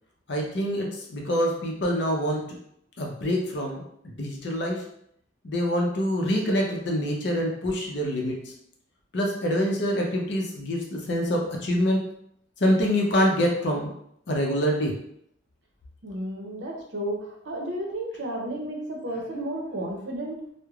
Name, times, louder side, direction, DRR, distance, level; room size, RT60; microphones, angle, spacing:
voice 1, 0.3-2.5 3.0-4.8 5.4-8.3 9.1-12.0 12.6-13.9 14.3-15.0, equal, 60° left, 0 dB, 0.6 m, -25 dB
voice 2, 16.0-17.2 17.4-20.4, right 1 dB, 65° right, 0 dB, 0.6 m, -32 dB
3.1 x 2.0 x 2.3 m, 0.71 s
head